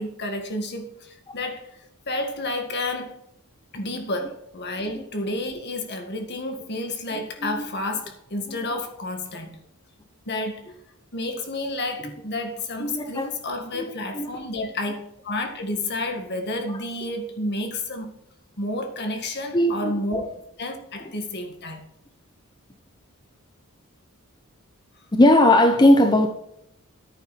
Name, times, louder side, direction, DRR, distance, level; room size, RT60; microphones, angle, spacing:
voice 1, 0.0-1.8 2.1-3.2 3.7-9.6 10.3-10.7 11.1-18.1 18.6-20.2 20.6-21.9, left 2 dB, 50° left, 1.9 m, -30 dB
voice 2, 12.8-13.3 13.7-14.3 19.5-20.3 25.1-26.3, left 1 dB, 20° left, 0.8 m, -18 dB
10.5 x 9.6 x 4.2 m
head